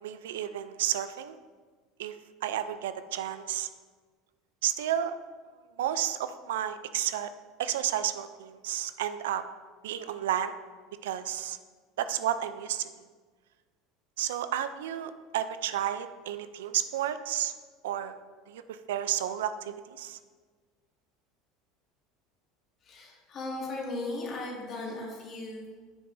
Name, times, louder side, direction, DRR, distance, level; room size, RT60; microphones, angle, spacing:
voice 1, 0.0-1.4 2.0-3.7 4.6-5.2 5.8-7.3 7.6-9.4 9.8-10.5 11.0-11.6 12.0-12.9 14.2-17.5 17.8-18.1 18.5-20.2, right 11 dB, 85° right, 12 dB, 0.3 m, -32 dB
voice 2, 22.8-25.8, left 2 dB, 45° left, -3 dB, 2.0 m, -37 dB
7.1 x 6.6 x 2.6 m, 1.5 s
supercardioid pair, 95°, 0 cm